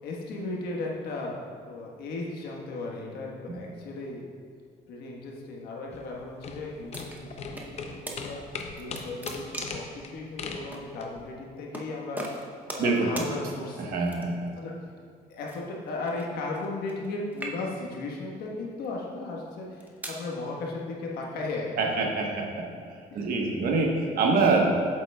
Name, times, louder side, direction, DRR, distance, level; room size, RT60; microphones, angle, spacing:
voice 1, 0.0-4.2 4.9-8.4 8.8-12.3 12.7-14.0 14.6-14.7 15.3-22.4 23.1-23.3, left 2 dB, 75° left, -2 dB, 1.3 m, -36 dB
sound 1, 5.9-11.2, left 4 dB, 40° left, 0.6 m, -39 dB
sound 2, 6.9-7.7 8.1-8.2 8.6-9.9 10.7-10.8 11.7-11.9 12.2-12.9 13.2-13.3 14.0-14.5 15.5-17.1 17.3-17.9 18.6-18.9 19.5-20.2, right 2 dB, 10° right, 0.7 m, -39 dB
voice 2, 13.8-14.6 21.8-22.6 23.1-24.7, right 3 dB, 65° right, 0 dB, 1.2 m, -25 dB
7.9 x 7.8 x 2.3 m, 2.2 s
cardioid pair, 130°, 17 cm